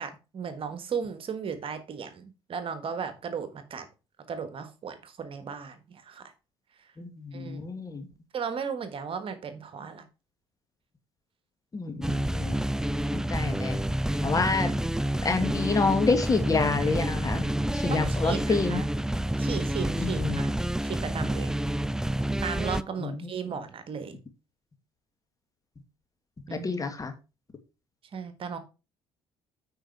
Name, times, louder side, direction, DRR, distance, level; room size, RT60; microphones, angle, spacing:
voice 1, 0.0-3.9 4.3-6.2 6.8-6.9 7.3-7.7 8.3-10.0 14.3-14.4 17.9-18.9 19.4-20.5 20.8-21.5 22.4-24.2 26.5-26.7 28.1-28.6, right 6 dB, 45° right, 1.5 m, -35 dB
voice 2, 7.0-8.1 11.7-12.6 13.1-13.8 14.2-14.7 15.2-17.4 17.7-18.8 20.0-20.4 23.0-23.2 26.6-27.1, left 4 dB, 30° left, 2.1 m, -28 dB
sound 1, 12.0-22.8, right 1 dB, 5° right, 0.4 m, -28 dB
8.9 x 5.0 x 4.6 m
hypercardioid pair, 60°, 12 cm